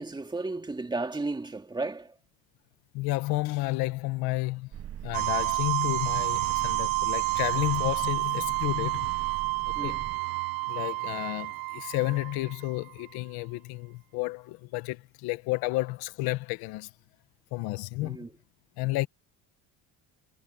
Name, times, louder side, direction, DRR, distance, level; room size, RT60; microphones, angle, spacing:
voice 1, 0.0-2.2 9.8-10.0 18.0-18.3, right 3 dB, 10° right, 2.3 m, -34 dB
voice 2, 2.9-4.7 5.0-9.1 9.6-10.0 10.7-16.9 17.5-18.2 18.8-19.1, left 20 dB, 90° left, 1.2 m, -31 dB
sound 1, 4.7-10.2, right 11 dB, 40° right, 1.0 m, -42 dB
sound 2, 5.1-12.9, right 25 dB, 70° right, 0.8 m, -30 dB
cardioid pair, 145°, 36 cm